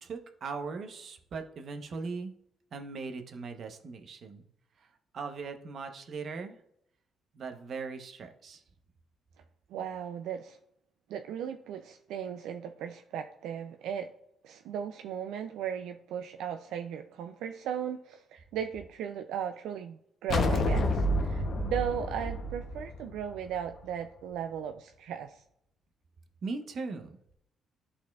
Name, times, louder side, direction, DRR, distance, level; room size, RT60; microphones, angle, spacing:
voice 1, 0.0-2.3 2.7-4.4 5.1-6.6 7.3-8.6 26.4-27.2, right 4 dB, 55° right, 6 dB, 0.8 m, -39 dB
voice 2, 9.7-10.6 11.1-14.1 14.4-25.4, right 8 dB, 90° right, 7 dB, 0.3 m, -37 dB
sound 1, 20.3-23.7, left 1 dB, 55° left, 0.7 m, -29 dB
11.5 x 4.2 x 2.3 m, 0.74 s
cardioid pair, 90°, 0 cm